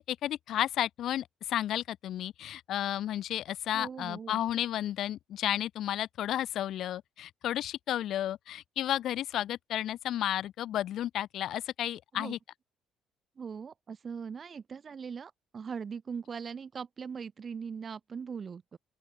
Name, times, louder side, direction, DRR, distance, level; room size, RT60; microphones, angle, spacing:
voice 1, 0.0-12.4, left 12 dB, 60° left, 0.4 m, -32 dB
voice 2, 3.7-4.4 12.1-12.3 13.4-18.8, right 6 dB, 35° right, 0.6 m, -40 dB
open air
cardioid pair, 130°, 0 cm